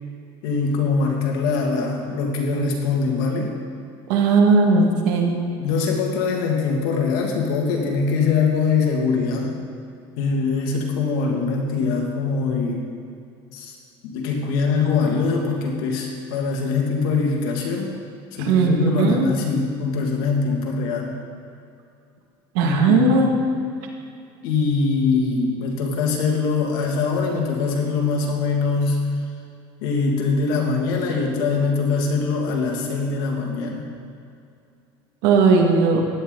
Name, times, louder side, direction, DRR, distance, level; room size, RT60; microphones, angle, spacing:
voice 1, 0.4-3.5 5.6-9.5 10.2-12.9 13.5-13.7 14.0-18.0 18.3-21.2 22.6-23.3 24.4-29.0 29.8-33.9, left 4 dB, 85° left, 0 dB, 2.4 m, -22 dB
voice 2, 4.1-5.3 18.5-19.3 22.6-23.3 35.2-36.0, right 4 dB, 85° right, 1 dB, 2.1 m, -17 dB
16.0 x 10.5 x 4.0 m, 2.5 s
cardioid pair, 130°, 11 cm